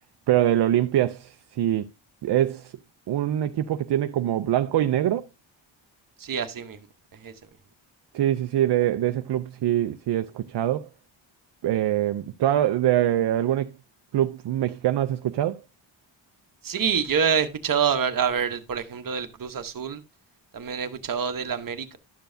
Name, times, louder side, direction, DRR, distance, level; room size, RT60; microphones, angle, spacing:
voice 1, 0.3-1.8 2.2-2.7 3.1-5.3 8.1-10.9 11.6-13.7 14.1-15.6, right 12 dB, 60° right, 0.5 m, -24 dB
voice 2, 6.2-6.8 7.2-7.3 16.6-20.0 20.5-22.0, right 7 dB, 45° right, 0.9 m, -26 dB
11.5 x 6.8 x 2.6 m
wide cardioid pair, 140°, 47 cm